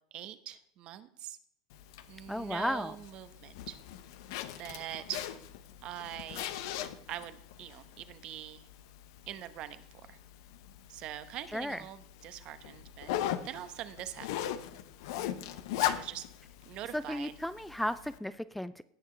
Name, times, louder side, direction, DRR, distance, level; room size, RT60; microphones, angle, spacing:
voice 1, 0.1-1.4 2.1-3.8 4.6-5.3 5.8-6.6 7.1-8.7 9.3-9.8 10.1-10.2 10.9-14.3 15.8-16.2 16.7-17.3, right 12 dB, 50° right, 12 dB, 0.9 m, -43 dB
Zipper (clothing), 1.7-18.2, left 12 dB, 70° left, 0.8 m, -40 dB
voice 2, 2.3-3.0 11.5-11.8 16.9-18.8, left 1 dB, 5° left, 15 dB, 0.3 m, -34 dB
17.0 x 6.6 x 3.3 m, 0.76 s
hypercardioid pair, 105°, 2 cm